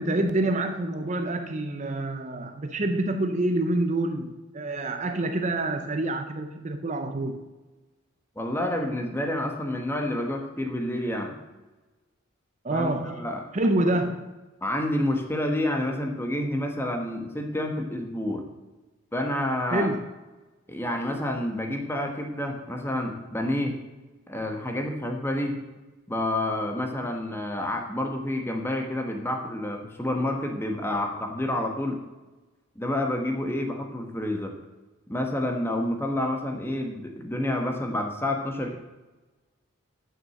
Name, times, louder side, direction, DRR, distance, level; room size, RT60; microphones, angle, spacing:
voice 1, 0.0-7.4 12.6-14.3 19.7-20.0, right 2 dB, 35° right, 7 dB, 0.6 m, -27 dB
voice 2, 8.4-11.3 12.7-13.4 14.6-18.4 19.1-19.9 20.7-23.8 24.3-25.6 26.1-32.0 32.8-34.5 35.1-38.7, left 1 dB, 10° left, 3 dB, 1.2 m, -29 dB
9.4 x 6.2 x 7.6 m, 1.2 s
head